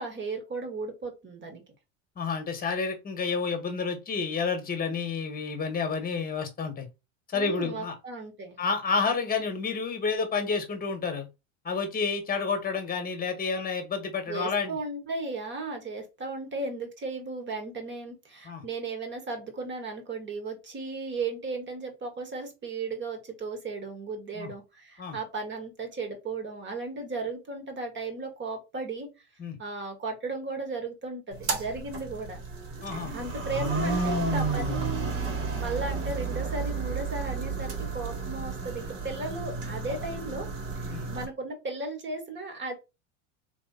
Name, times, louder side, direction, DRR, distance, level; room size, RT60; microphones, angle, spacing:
voice 1, 0.0-1.6 7.3-8.6 14.3-29.1 29.6-32.4 33.1-40.5 40.8-42.7, right 3 dB, 30° right, 1.7 m, -35 dB
voice 2, 2.1-6.9 7.3-7.9 8.6-11.3 11.6-14.8 18.4-18.6 24.3-24.5 25.0-25.2 29.4-29.6 32.8-33.1 40.9-41.1, left 5 dB, 25° left, 1.4 m, -30 dB
sound 1, 31.3-41.2, right 3 dB, 65° right, 2.2 m, -32 dB
3.4 x 3.1 x 4.2 m
supercardioid pair, 115°, 37 cm